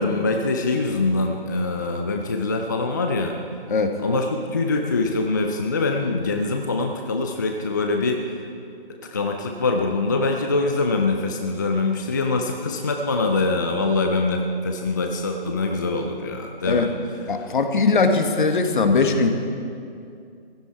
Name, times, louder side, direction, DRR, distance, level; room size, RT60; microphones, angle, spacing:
voice 1, 0.0-3.4 4.0-8.4 9.1-16.9, left 3 dB, 20° left, 4 dB, 0.4 m, -24 dB
voice 2, 17.3-19.3, left 4 dB, 60° left, 6 dB, 1.5 m, -20 dB
15.5 x 13.5 x 4.6 m, 2.4 s
figure-of-eight pair, 145°, 29 cm